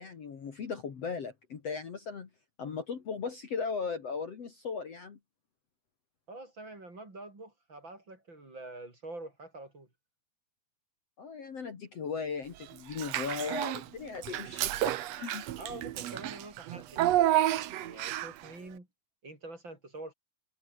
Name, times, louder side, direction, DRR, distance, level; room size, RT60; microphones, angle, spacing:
voice 1, 0.0-2.3 2.6-5.2 11.2-15.5, left 5 dB, 45° left, 3.1 m, -37 dB
voice 2, 6.3-9.9 15.6-18.9 19.2-20.1, right 2 dB, 30° right, 6.3 m, -46 dB
Child speech kid speaking / Bathtub (filling or washing), 12.9-13.8 14.2-18.5, right 13 dB, 80° right, 1.5 m, -30 dB
omnidirectional pair, 4.4 m